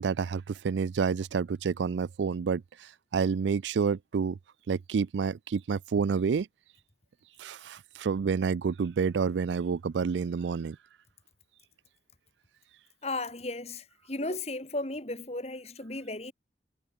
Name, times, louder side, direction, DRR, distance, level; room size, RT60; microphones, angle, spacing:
voice 1, 0.0-2.6 3.1-4.4 4.7-6.5 7.4-10.8, right 5 dB, 90° right, 0.4 m, -29 dB
voice 2, 13.0-16.3, left 2 dB, 35° left, 2.4 m, -35 dB
head